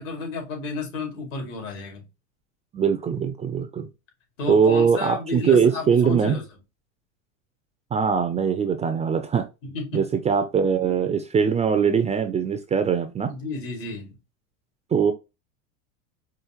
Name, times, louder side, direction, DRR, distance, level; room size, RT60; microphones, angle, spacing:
voice 1, 0.0-2.0 4.4-6.4 9.6-10.0 13.3-14.2, left 3 dB, 80° left, 2.5 m, -32 dB
voice 2, 2.7-3.9 4.5-6.4 7.9-9.5 9.9-13.3 14.9-15.1, right 6 dB, 20° right, 0.3 m, -21 dB
4.9 x 2.5 x 2.9 m
supercardioid pair, 110°, 39 cm